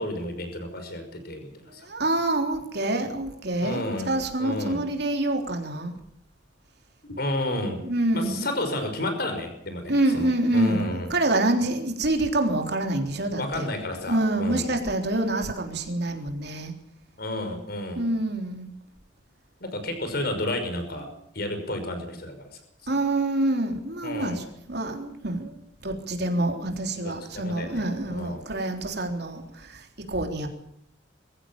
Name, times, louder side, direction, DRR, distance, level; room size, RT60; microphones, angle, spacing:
voice 1, 0.0-1.9 3.6-4.1 4.4-4.9 7.0-7.8 8.1-11.1 13.4-14.7 17.2-18.0 19.6-21.1 21.3-22.6 24.0-24.4 27.0-28.5, left 1 dB, 55° left, 6 dB, 5.7 m, -31 dB
voice 2, 1.8-5.9 7.8-8.5 9.9-13.7 14.1-16.7 18.0-18.7 22.9-25.6 25.8-30.5, right 2 dB, 60° right, 4 dB, 3.6 m, -26 dB
22.5 x 15.5 x 8.9 m, 0.72 s
head